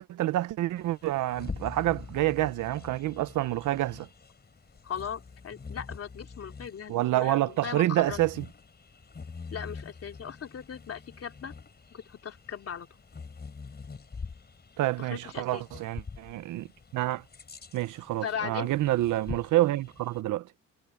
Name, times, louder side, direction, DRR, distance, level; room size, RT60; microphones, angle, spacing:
voice 1, 0.1-4.1 6.9-8.4 14.8-16.7 16.9-17.2 17.7-20.5, right 16 dB, 85° right, 0.9 m, -28 dB
Bird vocalization bird call bird song, 0.8-20.2, left 5 dB, 35° left, 4.9 m, -45 dB
voice 2, 4.8-8.2 9.5-11.5 11.9-12.9 15.0-15.6 18.2-18.7, left 7 dB, 50° left, 3.1 m, -38 dB
cardioid pair, 90°, 30 cm